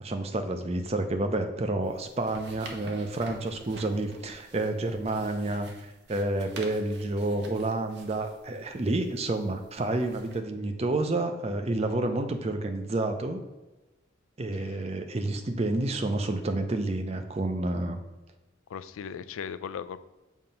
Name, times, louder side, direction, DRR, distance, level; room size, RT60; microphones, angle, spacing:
voice 1, 0.0-13.4 14.4-18.0, right 2 dB, 30° right, 7 dB, 0.5 m, -29 dB
sound 1, 1.8-10.4, right 2 dB, 55° right, 0.8 m, -49 dB
voice 2, 14.5-14.9 18.7-20.0, left 7 dB, 85° left, 14 dB, 0.3 m, -38 dB
7.2 x 2.9 x 5.2 m, 1.1 s
head